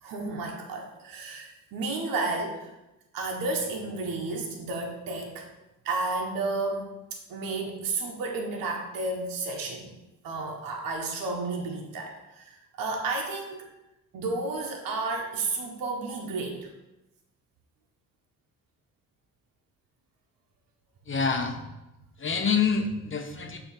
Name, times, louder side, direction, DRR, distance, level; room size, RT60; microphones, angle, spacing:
voice 1, 0.0-2.7 3.1-5.5 5.8-9.9 10.2-13.7 14.1-16.7 23.4-23.6, right 3 dB, 80° right, 1 dB, 1.3 m, -32 dB
voice 2, 21.1-21.6 22.2-23.6, left 5 dB, 35° left, 5 dB, 0.9 m, -26 dB
6.8 x 3.1 x 5.8 m, 0.97 s
supercardioid pair, 65°, 34 cm